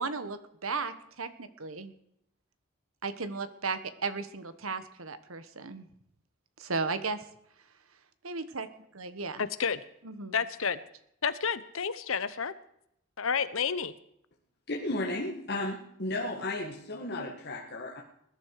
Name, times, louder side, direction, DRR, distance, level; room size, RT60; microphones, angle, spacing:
voice 1, 0.0-1.9 3.0-5.9 6.6-7.2 8.2-8.7 8.9-9.4 10.0-10.4, right 4 dB, 85° right, 11 dB, 1.4 m, -35 dB
voice 2, 9.4-9.8 10.3-10.8 11.2-12.5 13.2-13.9, left 6 dB, 75° left, 15 dB, 0.9 m, -30 dB
voice 3, 14.7-18.0, left 2 dB, 50° left, -2 dB, 1.8 m, -34 dB
20.5 x 11.5 x 4.8 m, 0.75 s
head